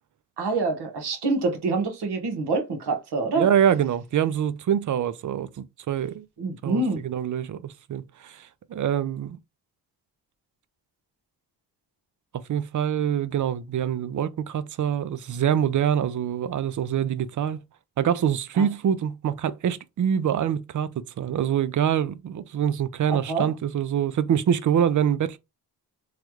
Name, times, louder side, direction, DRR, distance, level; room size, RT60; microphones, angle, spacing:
voice 1, 0.4-3.5 6.4-7.0 18.6-18.7 23.1-23.5, right 3 dB, 65° right, 1.2 m, -26 dB
voice 2, 3.3-6.2 6.6-9.4 12.3-17.6 18.0-25.4, right 9 dB, 45° right, 0.5 m, -25 dB
3.2 x 2.3 x 3.0 m
cardioid pair, 60°, 43 cm